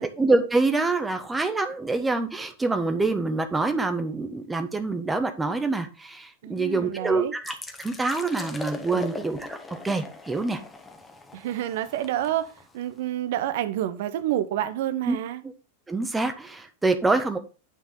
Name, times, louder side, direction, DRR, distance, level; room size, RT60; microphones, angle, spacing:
voice 1, 0.0-7.5 7.8-9.6 9.8-10.6 15.0-15.2 15.4-15.5 15.9-17.4, right 3 dB, 10° right, 1.2 m, -26 dB
voice 2, 6.4-7.3 8.9-9.0 11.3-15.4, right 12 dB, 55° right, 1.0 m, -29 dB
sound 1, 7.4-13.0, left 3 dB, 10° left, 1.4 m, -40 dB
9.3 x 5.3 x 3.8 m
figure-of-eight pair, 90°, 0 cm